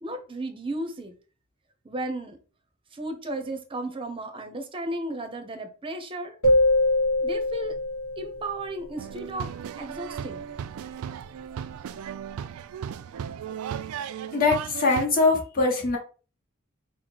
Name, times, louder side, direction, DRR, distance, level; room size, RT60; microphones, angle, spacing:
voice 1, 0.0-1.1 1.8-2.4 2.9-6.4 7.2-7.7 8.2-9.5 9.8-10.5, right 1 dB, 25° right, 0.6 m, -34 dB
sound 1, 6.4-8.7, left 1 dB, 70° left, 0.9 m, -23 dB
sound 2, 9.0-15.1, right 8 dB, 85° right, 0.3 m, -36 dB
voice 2, 14.3-16.0, left 3 dB, 45° left, 1.2 m, -22 dB
4.0 x 2.1 x 4.5 m
head